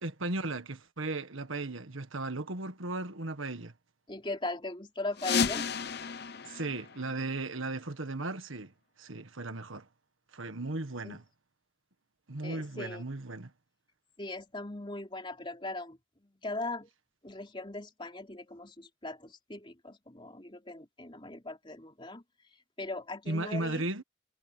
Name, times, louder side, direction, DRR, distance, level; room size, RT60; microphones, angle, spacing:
voice 1, 0.0-3.7 6.4-8.7 9.0-9.8 10.3-11.2 12.3-13.5 23.3-24.0, right 2 dB, 75° right, 1.7 m, -36 dB
voice 2, 4.1-5.7 11.0-11.2 12.4-13.0 14.2-16.9 17.2-23.9, left 2 dB, 25° left, 3.5 m, -40 dB
sound 1, 5.1-7.8, left 6 dB, 50° left, 1.0 m, -33 dB
head